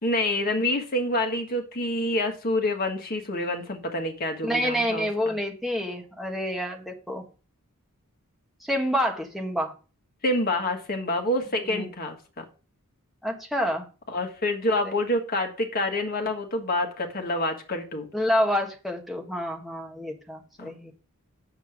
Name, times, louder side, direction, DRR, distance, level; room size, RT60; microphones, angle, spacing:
voice 1, 0.0-5.4 10.2-12.4 14.1-18.1 20.6-20.8, left 1 dB, 40° left, 4 dB, 1.6 m, -27 dB
voice 2, 4.4-7.2 8.6-9.7 11.6-11.8 13.2-13.9 18.1-20.9, equal, ahead, 1 dB, 1.4 m, -28 dB
7.9 x 6.9 x 4.9 m, 0.35 s
head